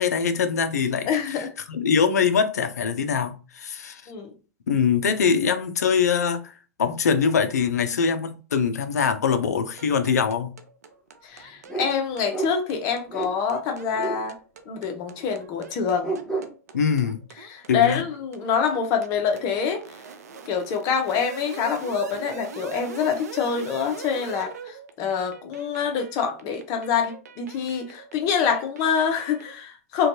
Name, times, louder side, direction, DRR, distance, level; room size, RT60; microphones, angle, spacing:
voice 1, 0.0-4.0 4.7-6.5 6.8-10.5 16.7-17.2 17.7-18.0, left 6 dB, 80° left, 0.4 m, -23 dB
voice 2, 1.1-1.5 4.1-4.3 11.2-14.4 14.7-16.2 17.4-20.0 20.5-30.1, left 6 dB, 45° left, 0.7 m, -26 dB
sound 1, 9.8-29.6, right 6 dB, 75° right, 0.4 m, -43 dB
sound 2, 11.7-11.9 12.3-12.5 13.1-13.3 13.9-14.2 15.2-15.3 16.0-16.5, right 3 dB, 10° left, 0.8 m, -29 dB
2.5 x 2.2 x 2.7 m
hypercardioid pair, 100°, 9 cm